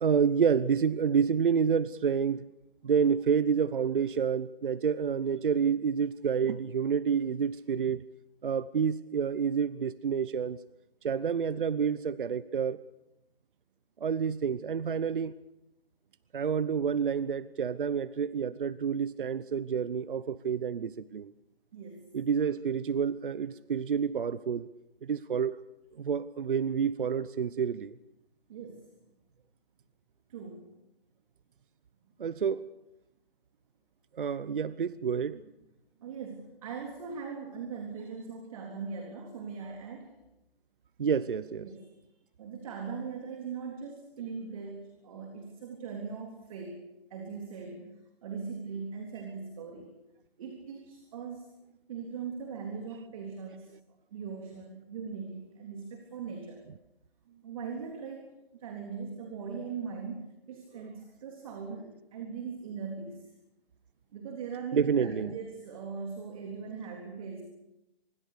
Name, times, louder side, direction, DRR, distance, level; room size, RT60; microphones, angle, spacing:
voice 1, 0.0-2.4 2.8-8.0 8.4-10.6 11.0-12.8 14.0-15.3 16.3-21.3 22.1-24.7 25.0-25.6 26.0-28.0 32.2-32.6 34.1-35.4 41.0-41.6 64.7-65.3, right 6 dB, 60° right, 0.9 m, -28 dB
voice 2, 21.7-22.1 28.5-28.9 30.3-30.7 35.4-35.5 36.0-40.1 41.6-42.0 42.4-49.9 50.4-51.5 51.9-53.7 54.1-56.7 57.3-58.3 58.6-63.3 64.1-67.4, right 5 dB, 35° right, 3.7 m, -40 dB
26.5 x 22.0 x 6.8 m
figure-of-eight pair, 150°, 30 cm